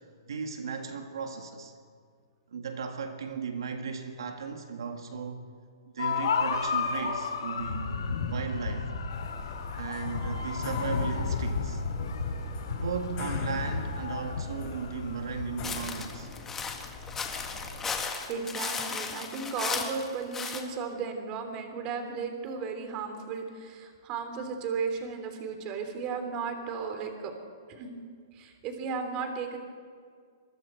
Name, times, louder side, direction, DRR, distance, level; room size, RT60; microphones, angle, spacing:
voice 1, 0.3-1.7 2.5-5.5 5.9-8.9 9.7-11.8 12.7-16.3, right 5 dB, 80° right, 1.8 m, -36 dB
sound 1, 6.0-15.8, left 4 dB, 90° left, 3.4 m, -32 dB
sound 2, 9.1-18.0, left 5 dB, 35° left, 3.4 m, -43 dB
sound 3, 15.6-20.6, left 5 dB, 15° left, 1.8 m, -35 dB
voice 2, 18.3-27.3 27.7-27.9 28.3-29.6, right 5 dB, 30° right, 3.4 m, -35 dB
26.0 x 23.0 x 4.6 m
hypercardioid pair, 145°, 2 cm